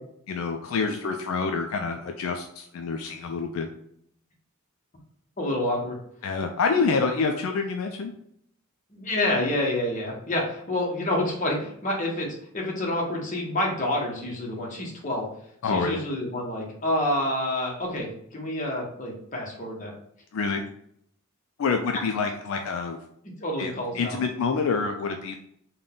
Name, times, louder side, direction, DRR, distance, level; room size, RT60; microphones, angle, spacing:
voice 1, 0.3-3.7 6.2-8.1 15.6-16.0 20.3-20.6 21.6-23.0 23.6-25.4, left 4 dB, 65° left, 4 dB, 0.3 m, -27 dB
voice 2, 5.4-6.0 8.9-12.3 12.5-15.3 15.6-19.9 23.4-24.2, left 1 dB, 35° left, -1 dB, 0.9 m, -28 dB
3.8 x 2.2 x 3.6 m, 0.69 s
head